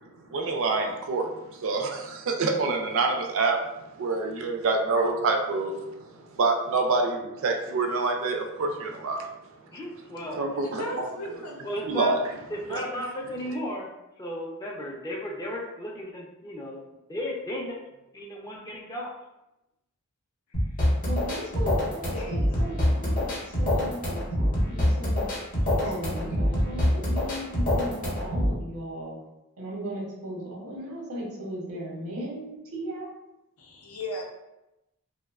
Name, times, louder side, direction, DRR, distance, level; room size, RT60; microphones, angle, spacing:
voice 1, 0.3-3.6 4.0-9.3 10.4-11.1 11.8-12.2 12.7-12.8, right 3 dB, 65° right, 3 dB, 0.4 m, -27 dB
voice 2, 9.7-10.4 11.6-12.2 12.5-13.9 14.2-16.8 17.1-17.8 18.1-19.1, equal, 15° left, -2 dB, 0.4 m, -34 dB
voice 3, 10.6-11.5 20.5-21.0 22.1-23.1 25.7-25.9 33.6-34.2, left 1 dB, 85° left, -1 dB, 0.6 m, -38 dB
sound 1, 20.5-28.5, left 1 dB, 40° left, 0.7 m, -25 dB
voice 4, 21.0-25.3 25.8-29.2 29.6-33.1, right 1 dB, 90° right, -3 dB, 0.8 m, -37 dB
2.5 x 2.1 x 2.3 m, 0.93 s
head